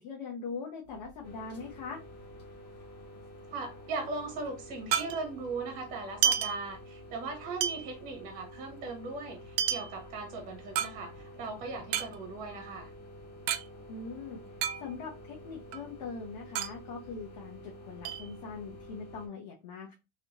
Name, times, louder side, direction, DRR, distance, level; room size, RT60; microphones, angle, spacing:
voice 1, 0.0-2.0 13.9-14.4 14.8-19.9, left 5 dB, 90° left, 1.0 m, -41 dB
sound 1, 0.9-2.6 2.8-2.9 3.2-5.6 6.0-7.2 7.6-11.4 11.8-13.7 13.9-14.0 14.3-15.2 15.6-17.6 18.0-18.9, right 9 dB, 65° right, 0.4 m, -33 dB
sound 2, 1.2-19.3, equal, 50° left, 1.3 m, -49 dB
voice 2, 3.5-12.9, right 3 dB, 40° right, 1.2 m, -39 dB
3.1 x 2.9 x 2.9 m
cardioid pair, 175°, 21 cm